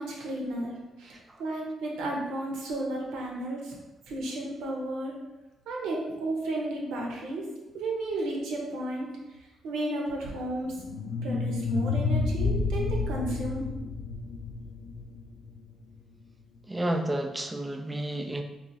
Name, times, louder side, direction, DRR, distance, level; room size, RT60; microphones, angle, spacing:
voice 1, 0.0-3.8 4.1-5.1 5.7-7.5 7.7-9.1 9.6-10.7 11.2-13.7, right 1 dB, 90° right, -1 dB, 0.8 m, -33 dB
sound 1, 10.7-15.8, left 4 dB, 90° left, 0.3 m, -30 dB
voice 2, 16.7-18.4, right 1 dB, 15° right, 5 dB, 0.4 m, -31 dB
2.9 x 2.4 x 3.9 m, 1.0 s
cardioid pair, 90°, 0 cm